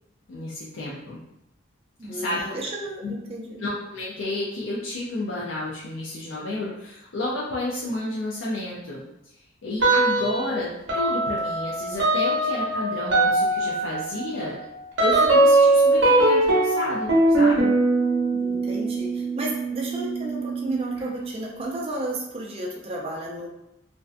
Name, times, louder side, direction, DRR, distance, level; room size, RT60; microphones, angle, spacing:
voice 1, 0.3-1.2 2.0-2.6 3.0-3.1 3.6-9.0 9.6-14.6 15.0-17.1 17.4-17.7, left 1 dB, 85° left, -7 dB, 0.5 m, -31 dB
voice 2, 2.0-3.7 18.3-23.5, right 1 dB, 30° right, -2 dB, 0.4 m, -33 dB
sound 1, 9.8-10.6 10.9-21.2, right 2 dB, 65° right, 0.7 m, -21 dB
2.6 x 2.2 x 2.4 m, 0.85 s
head